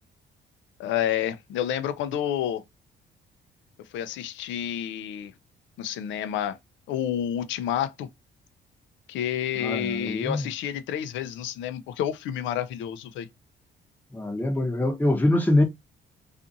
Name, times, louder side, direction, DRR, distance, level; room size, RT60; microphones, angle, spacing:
voice 1, 0.8-2.6 3.9-5.3 5.8-6.6 6.9-8.1 9.1-13.3, left 10 dB, 80° left, 0.4 m, -29 dB
voice 2, 9.6-10.5 14.1-15.6, left 1 dB, 10° left, 0.7 m, -24 dB
2.5 x 2.5 x 2.6 m
cardioid pair, 85°, 19 cm